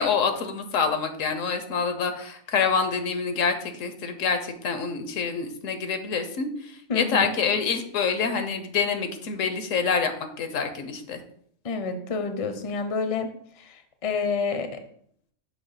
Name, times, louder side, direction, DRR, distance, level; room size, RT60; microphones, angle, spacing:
voice 1, 0.0-10.1 10.4-11.2, left 5 dB, 80° left, 8 dB, 1.1 m, -26 dB
voice 2, 6.9-7.3 11.6-14.8, left 4 dB, 40° left, 8 dB, 0.5 m, -29 dB
6.3 x 3.0 x 5.6 m, 0.65 s
omnidirectional pair, 1.3 m